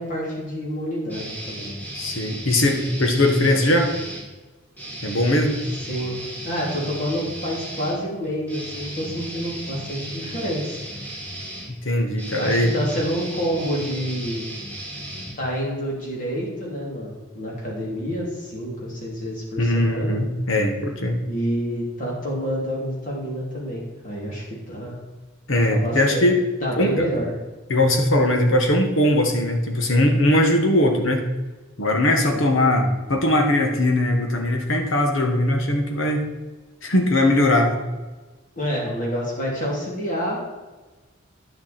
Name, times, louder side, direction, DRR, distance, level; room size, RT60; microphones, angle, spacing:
voice 1, 0.0-1.7 5.9-6.2 6.4-10.8 12.4-14.4 15.4-20.2 21.3-25.0 25.7-26.3 26.6-27.3 32.2-32.4 38.6-40.4, equal, 40° left, -4 dB, 3.0 m, -28 dB
sound 1, 1.1-4.3 4.7-15.9, right 1 dB, 10° left, 1.9 m, -35 dB
voice 2, 1.9-3.9 5.0-5.6 11.7-12.7 19.6-21.2 25.5-26.4 26.8-27.1 27.7-31.2 31.8-36.2 36.8-37.8, left 1 dB, 75° left, 3 dB, 1.4 m, -20 dB
10.0 x 6.4 x 4.4 m, 1.2 s
head